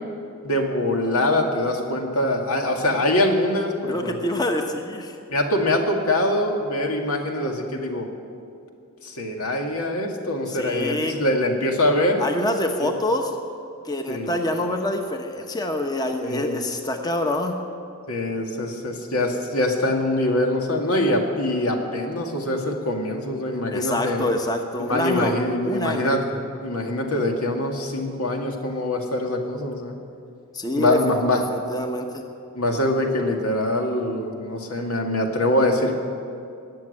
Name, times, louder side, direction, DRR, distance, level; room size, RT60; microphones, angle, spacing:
voice 1, 0.4-4.3 5.3-8.1 9.0-12.2 12.8-12.9 14.1-14.3 16.2-16.6 18.1-24.3 24.8-30.0 30.8-31.4 32.5-36.0, left 1 dB, 85° left, 2 dB, 2.0 m, -24 dB
voice 2, 3.9-5.2 10.5-11.1 12.2-13.3 13.8-17.5 23.7-25.3 25.6-26.1 30.5-31.0 31.5-32.2, left 1 dB, 20° left, 4 dB, 1.0 m, -26 dB
19.5 x 7.3 x 9.8 m, 2.5 s
head